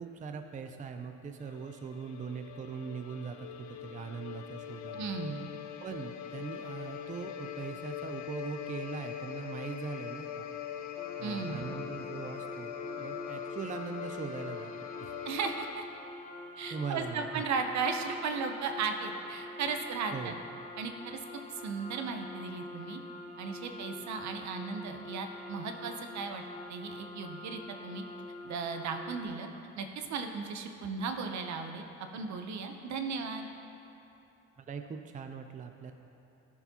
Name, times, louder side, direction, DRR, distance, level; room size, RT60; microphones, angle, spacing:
voice 1, 0.0-5.1 5.8-10.5 11.2-14.7 15.0-15.1 16.7-17.4 20.1-20.4 34.6-35.9, right 5 dB, 25° right, 6 dB, 0.4 m, -41 dB
sound 1, 1.4-15.7, left 10 dB, 70° left, 0.4 m, -42 dB
voice 2, 4.9-5.5 11.2-11.7 15.2-15.8 16.6-20.3 20.8-21.2 21.5-23.0 23.4-26.4 26.7-28.0 28.4-29.5 29.8-31.8 32.1-33.5, right 5 dB, 65° right, 6 dB, 0.7 m, -36 dB
sound 2, 11.0-29.3, left 2 dB, 25° left, 0.9 m, -45 dB
13.5 x 4.8 x 2.8 m, 2.9 s
cardioid pair, 90°, 30 cm